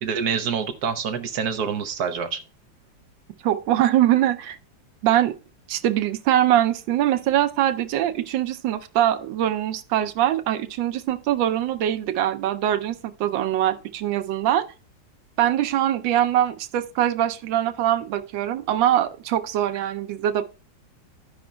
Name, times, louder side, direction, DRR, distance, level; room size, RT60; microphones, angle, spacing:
voice 1, 0.0-2.4, right 6 dB, 65° right, 1.2 m, -26 dB
voice 2, 3.4-4.6 5.0-5.3 5.7-12.9 13.2-14.6 15.4-20.4, right 12 dB, 90° right, 1.4 m, -22 dB
15.0 x 5.1 x 2.2 m
omnidirectional pair, 2.0 m